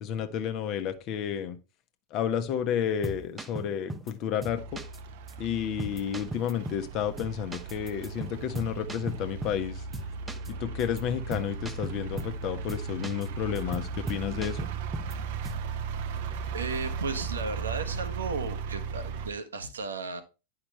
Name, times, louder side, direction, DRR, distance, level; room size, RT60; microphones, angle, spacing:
voice 1, 0.0-1.6 2.1-4.8 5.4-9.8 10.5-14.6, left 9 dB, 40° left, 1.0 m, -31 dB
sound 1, 2.8-4.1 4.4-5.0 5.3-5.4 5.8-6.9 7.2-9.7 9.9-10.5 10.8-11.0 11.3-12.4 12.7-13.3 13.6-15.2 15.4-15.7, right 1 dB, 10° right, 0.8 m, -38 dB
sound 2, 4.6-19.3, right 5 dB, 50° right, 0.7 m, -36 dB
voice 2, 16.5-20.2, right 4 dB, 70° right, 1.1 m, -34 dB
10.0 x 5.8 x 3.3 m
figure-of-eight pair, 90°, 0 cm